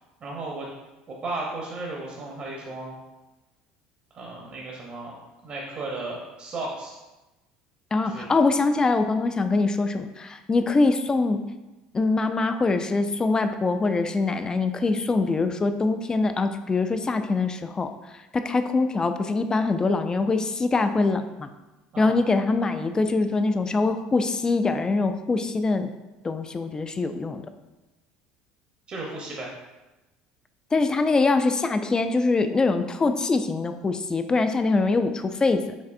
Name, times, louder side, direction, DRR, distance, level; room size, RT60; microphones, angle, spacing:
voice 1, 0.2-0.7 1.1-3.0 4.1-5.2 5.4-7.0 8.0-8.2 21.9-22.1 28.9-29.5, right 2 dB, 45° right, -2 dB, 0.9 m, -34 dB
voice 2, 7.9-11.4 11.9-17.9 18.3-21.5 22.0-25.9 26.2-27.4 30.7-35.6, left 3 dB, 25° left, 9 dB, 0.4 m, -23 dB
5.2 x 3.2 x 2.6 m, 1.1 s
hypercardioid pair, 80°, 3 cm